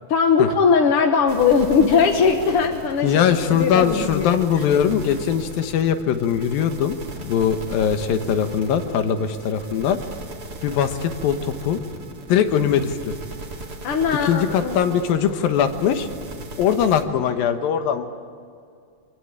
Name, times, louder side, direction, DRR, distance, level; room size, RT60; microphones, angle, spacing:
voice 1, 0.1-4.4 13.8-14.8, left 6 dB, 55° left, 3 dB, 1.6 m, -19 dB
sound 1, 1.3-17.0, right 2 dB, 30° right, 2.4 m, -37 dB
voice 2, 3.0-10.0 10.6-11.8 12.3-13.1 14.2-16.1 16.6-18.1, left 8 dB, 85° left, 8 dB, 3.1 m, -21 dB
25.0 x 24.0 x 9.0 m, 2.3 s
omnidirectional pair, 4.0 m